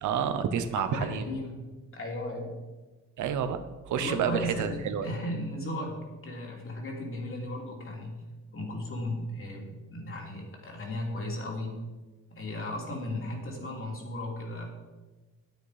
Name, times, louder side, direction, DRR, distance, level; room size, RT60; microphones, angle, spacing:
voice 1, 0.0-1.3 3.2-3.6 3.9-5.1, right 8 dB, 75° right, 10 dB, 0.9 m, -29 dB
voice 2, 0.8-1.6 1.9-2.5 3.9-6.0 6.2-8.2 8.5-11.8 12.3-14.7, left 1 dB, 45° left, 0 dB, 3.0 m, -35 dB
9.3 x 8.6 x 5.0 m, 1.2 s
cardioid pair, 90°, 30 cm